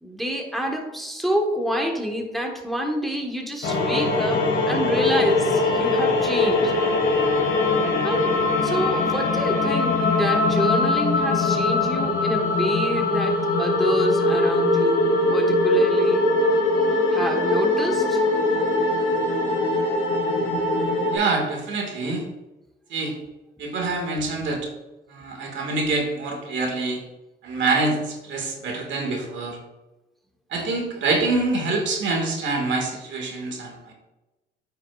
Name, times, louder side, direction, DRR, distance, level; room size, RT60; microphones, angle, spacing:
voice 1, 0.0-6.7 8.0-16.2 17.1-18.2, right 1 dB, ahead, 1 dB, 1.3 m, -28 dB
sound 1, 3.6-21.2, left 2 dB, 80° left, 1.6 m, -21 dB
voice 2, 21.1-22.2 22.9-23.1 23.6-24.7 25.1-27.0 27.4-29.6 30.5-33.9, right 3 dB, 70° right, 1 dB, 1.8 m, -25 dB
9.3 x 5.9 x 2.4 m, 1.0 s
cardioid pair, 90°, 20 cm